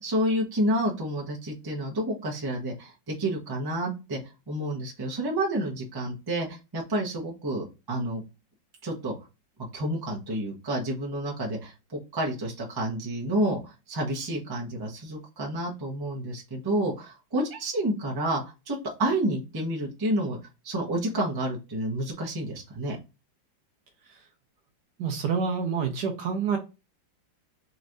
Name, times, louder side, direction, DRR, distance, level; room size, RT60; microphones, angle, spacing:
voice 1, 0.0-4.2 4.5-8.2 8.8-9.1 9.7-20.4 20.6-23.0, right 1 dB, 15° right, -2 dB, 0.8 m, -29 dB
voice 2, 25.0-26.6, right 6 dB, 65° right, 3 dB, 1.2 m, -27 dB
4.3 x 3.1 x 2.6 m, 0.27 s
omnidirectional pair, 2.1 m